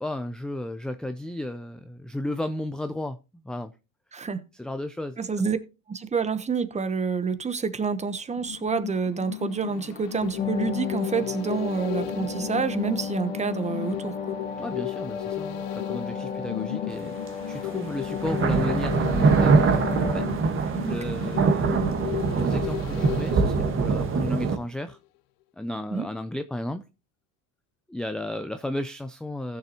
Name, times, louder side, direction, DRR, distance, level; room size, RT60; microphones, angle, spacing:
voice 1, 0.0-3.2 3.4-3.7 4.6-5.2 14.6-17.1 17.5-19.8 20.1-20.3 20.8-21.9 22.4-25.0 25.6-26.8 27.9-29.6, left 1 dB, ahead, 0.4 m, -33 dB
voice 2, 4.1-4.4 5.2-5.6 5.9-14.3 20.8-21.0 25.9-26.1, right 5 dB, 20° right, 0.9 m, -28 dB
sound 1, 8.4-24.6 25.0-25.1, left 15 dB, 85° left, 0.7 m, -36 dB
sound 2, 10.4-20.3, left 6 dB, 25° left, 1.8 m, -33 dB
sound 3, 17.3-17.4 18.1-24.6, right 4 dB, 35° right, 1.4 m, -23 dB
15.0 x 6.9 x 2.9 m
cardioid pair, 115°, 35 cm